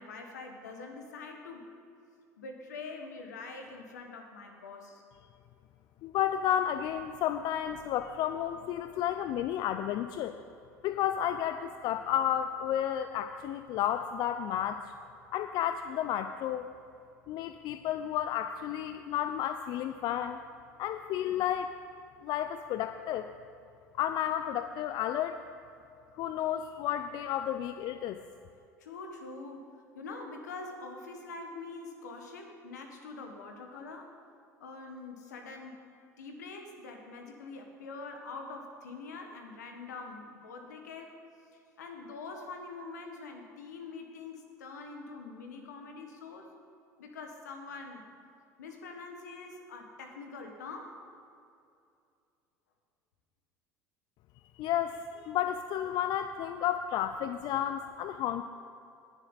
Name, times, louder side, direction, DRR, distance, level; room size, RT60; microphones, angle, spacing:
voice 1, 0.0-1.6 2.4-5.0 28.8-29.7 29.9-34.1 34.6-35.8 36.2-41.2 41.8-46.5 47.0-48.0 48.6-50.9, left 3 dB, 80° left, 4 dB, 1.5 m, -44 dB
voice 2, 6.0-10.3 10.8-14.8 15.3-16.7 17.3-20.4 20.8-21.7 22.2-23.3 24.0-25.4 26.2-28.2 54.6-58.4, left 10 dB, 50° left, 9 dB, 0.5 m, -32 dB
19.0 x 7.3 x 4.0 m, 2.5 s
hypercardioid pair, 70°, 9 cm